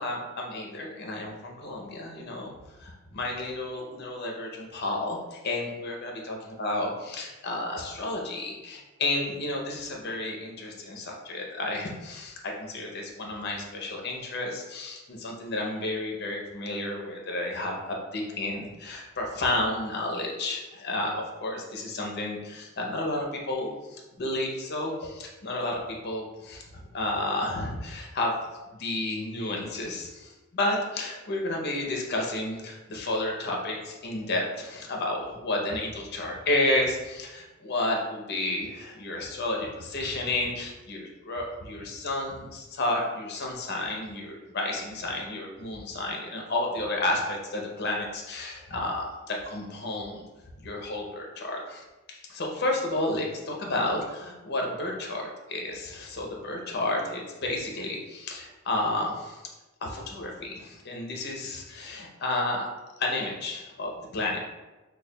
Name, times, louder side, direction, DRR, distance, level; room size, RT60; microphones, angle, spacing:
voice 1, 0.0-2.5 2.8-28.4 28.7-50.2 50.6-59.4 59.8-62.7 63.0-64.4, left 2 dB, 50° left, 0 dB, 0.6 m, -31 dB
6.3 x 2.3 x 2.2 m, 1.1 s
head